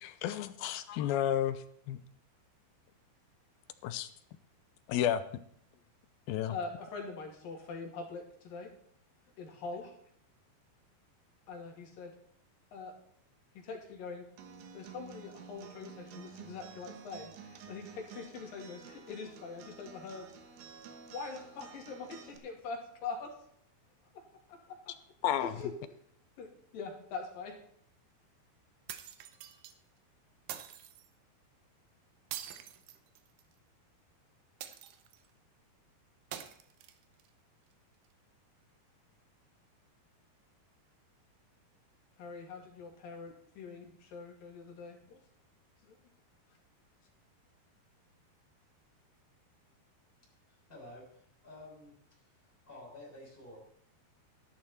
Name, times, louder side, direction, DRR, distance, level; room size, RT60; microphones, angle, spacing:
voice 1, 0.0-2.0 3.8-4.1 4.9-5.2 6.3-6.6 25.2-25.5, left 10 dB, 80° left, 12 dB, 2.3 m, -32 dB
voice 2, 6.5-8.7 9.4-9.9 11.5-12.1 12.7-12.9 13.5-14.3 14.7-20.3 20.9-23.3 24.1-24.2 24.7-24.8 25.4-25.7 26.4-27.6 42.2-45.2, left 4 dB, 60° left, 1 dB, 4.0 m, -43 dB
Acoustic guitar, 14.4-22.4, right 5 dB, 90° right, 3.4 m, -51 dB
sound 1, 28.9-29.7 30.5-31.1 32.3-33.5 34.6-35.3 36.3-37.3, right 11 dB, 75° right, 2.4 m, -45 dB
voice 3, 50.5-52.2 52.7-53.6, left 1 dB, 10° left, -3 dB, 6.7 m, -51 dB
12.5 x 11.5 x 4.3 m, 0.67 s
omnidirectional pair, 4.7 m